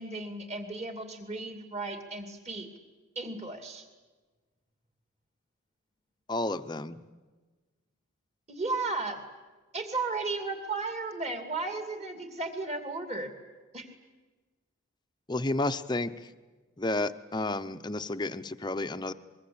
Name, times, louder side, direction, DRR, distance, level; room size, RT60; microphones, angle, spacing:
voice 1, 0.0-2.7 3.2-3.8 8.5-9.2 9.7-13.3 13.7-13.9, right 3 dB, 30° right, 6 dB, 2.6 m, -34 dB
voice 2, 6.3-7.0 15.3-16.3 16.8-19.1, left 2 dB, 20° left, 9 dB, 0.7 m, -31 dB
24.5 x 22.5 x 8.7 m, 1.3 s
head